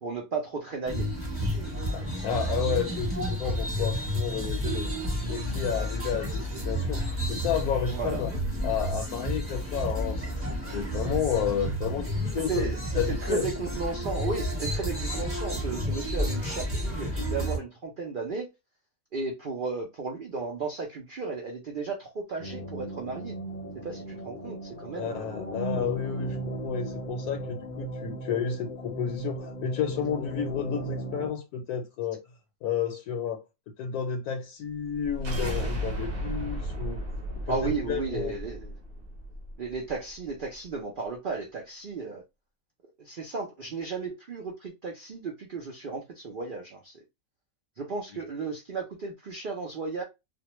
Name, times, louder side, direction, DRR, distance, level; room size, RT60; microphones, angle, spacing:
voice 1, 0.0-1.1 1.5-1.7 7.9-8.2 12.5-12.8 13.1-18.5 19.1-23.4 23.8-25.3 37.5-38.8 39.6-42.2 43.0-47.0 47.8-50.0, right 4 dB, 85° right, 0.4 m, -34 dB
sound 1, 0.8-17.6, equal, 10° right, 0.7 m, -31 dB
voice 2, 1.9-4.9 5.3-7.0 7.3-8.3 8.6-10.3 10.7-12.6 13.0-13.5 24.9-32.2 32.6-33.4 33.8-37.0 37.5-38.3, left 7 dB, 80° left, 1.1 m, -31 dB
sound 2, 22.4-31.3, right 1 dB, 45° left, 0.6 m, -37 dB
sound 3, 34.8-39.9, equal, 50° right, 0.7 m, -34 dB
2.4 x 2.1 x 2.9 m
omnidirectional pair, 1.6 m